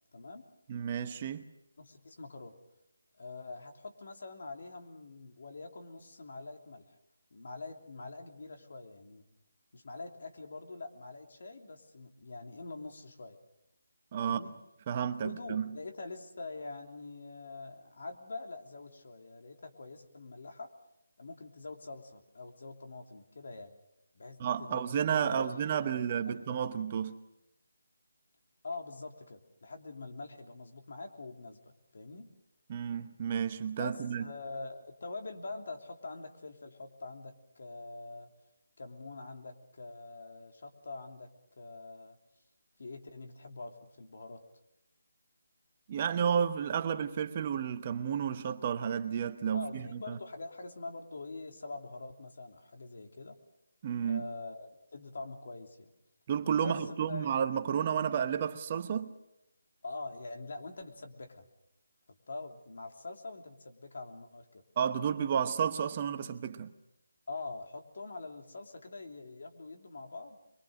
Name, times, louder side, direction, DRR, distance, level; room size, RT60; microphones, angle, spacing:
voice 1, 0.1-0.5 1.8-2.6 3.2-6.8 7.3-9.2 9.7-13.4 14.2-14.6 15.2-20.7 21.2-23.7 24.1-24.8 25.2-26.3 28.6-32.3 33.8-38.3 38.8-41.3 41.6-42.2 42.8-44.4 49.5-53.4 54.0-55.9 56.6-57.3 59.8-61.5 62.3-64.6 67.3-70.4, left 3 dB, 60° left, 3.1 m, -44 dB
voice 2, 0.7-1.5 14.1-14.4 14.9-15.7 24.4-27.2 32.7-34.2 45.9-50.2 53.8-54.3 56.3-59.1 64.8-66.7, right 8 dB, 30° right, 1.0 m, -31 dB
24.5 x 23.0 x 6.6 m
figure-of-eight pair, 165°, 0 cm